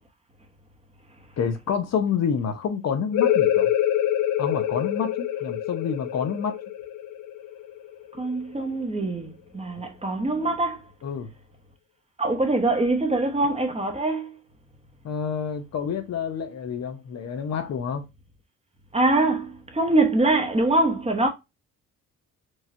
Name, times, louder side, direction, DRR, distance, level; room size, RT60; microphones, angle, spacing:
voice 1, 1.4-3.7 4.4-6.6 11.0-11.3 15.0-18.0, left 6 dB, 60° left, 0.9 m, -28 dB
sound 1, 3.1-8.5, left 11 dB, 90° left, 0.6 m, -25 dB
voice 2, 8.2-10.8 12.2-14.4 18.9-21.3, right 2 dB, 20° right, 1.3 m, -23 dB
4.7 x 3.0 x 2.6 m
cardioid pair, 90°, 30 cm